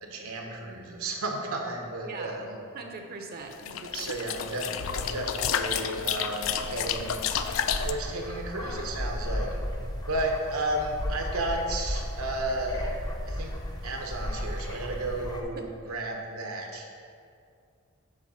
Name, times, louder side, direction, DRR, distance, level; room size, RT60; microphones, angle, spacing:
voice 1, 0.0-2.6 3.9-7.2 7.8-9.5 10.1-13.0 13.2-13.5 13.8-17.0, right 1 dB, 85° right, 1 dB, 1.0 m, -33 dB
voice 2, 2.0-2.4 2.7-4.3, right 3 dB, 45° right, 3 dB, 0.6 m, -41 dB
sound 1, 3.5-7.9, left 8 dB, 65° left, 0.3 m, -31 dB
sound 2, 6.3-15.4, left 1 dB, 20° left, 0.6 m, -35 dB
7.4 x 3.6 x 5.5 m, 2.4 s
head